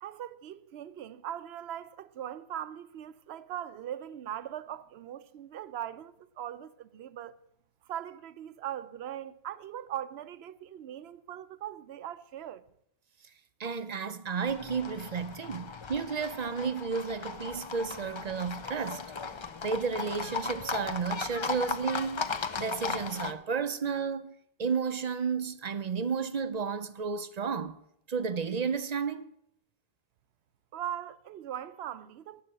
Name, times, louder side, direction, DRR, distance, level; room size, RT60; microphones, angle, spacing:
voice 1, 0.0-7.4 7.9-12.6 30.7-32.4, right 11 dB, 85° right, 0.8 m, -40 dB
voice 2, 13.6-19.0 19.6-22.3 22.6-24.3 24.6-27.8 28.1-29.3, right 5 dB, 50° right, 0.6 m, -32 dB
Livestock farm animals working animals, 14.5-23.3, left 5 dB, 35° left, 0.5 m, -37 dB
11.5 x 5.8 x 7.8 m
omnidirectional pair, 1.1 m